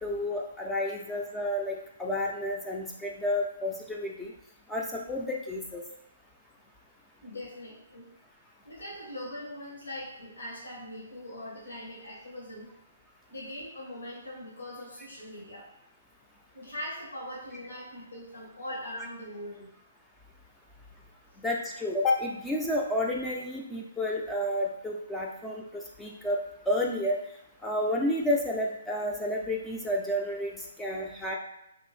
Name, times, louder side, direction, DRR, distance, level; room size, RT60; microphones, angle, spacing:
voice 1, 0.0-4.3 4.7-5.8 21.4-26.4 26.7-27.2 27.6-31.3, left 1 dB, 5° left, -2 dB, 0.3 m, -30 dB
voice 2, 7.2-8.1 8.6-12.7 13.3-15.7 16.5-19.7, left 1 dB, 90° left, -4 dB, 1.0 m, -41 dB
2.6 x 2.4 x 3.1 m, 0.82 s
hypercardioid pair, 145°, 0 cm